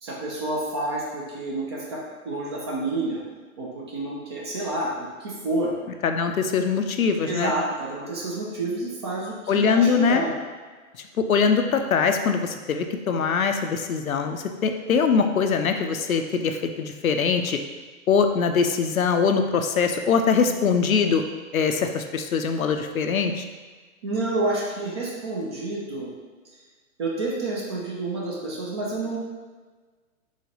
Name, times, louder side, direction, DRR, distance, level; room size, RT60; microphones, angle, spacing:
voice 1, 0.0-2.0 2.2-3.2 3.6-5.7 7.3-10.3 24.0-26.1 27.0-29.2, right 2 dB, 20° right, -4 dB, 0.4 m, -29 dB
voice 2, 6.0-7.5 9.5-10.2 11.2-17.6 18.1-21.2 21.5-23.4, left 5 dB, 75° left, 6 dB, 0.6 m, -22 dB
4.9 x 3.9 x 2.7 m, 1.4 s
figure-of-eight pair, 110°, 43 cm